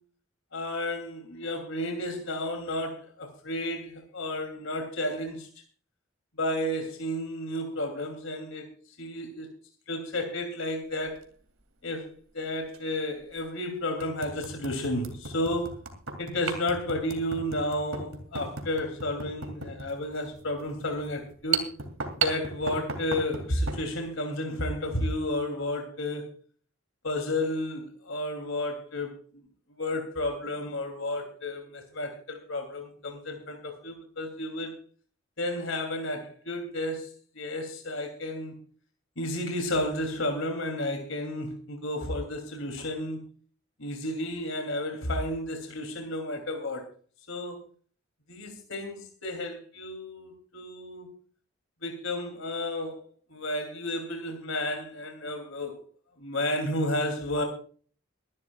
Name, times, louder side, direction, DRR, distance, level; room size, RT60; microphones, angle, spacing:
voice 1, 0.5-5.5 6.4-8.7 9.0-9.5 9.9-11.3 11.8-15.8 16.2-21.7 22.2-26.3 27.0-29.1 29.7-34.7 35.4-37.1 37.3-38.6 39.2-43.3 43.8-46.9 47.3-47.6 48.3-51.1 51.8-53.0 53.3-55.8 56.2-57.4, left 1 dB, 70° left, 3 dB, 3.0 m, -32 dB
sound 1, 11.0-11.2 12.7-12.8 13.4-13.5 14.0-23.9, right 5 dB, 75° right, 2.7 m, -35 dB
23.0 x 12.0 x 2.4 m, 0.42 s
head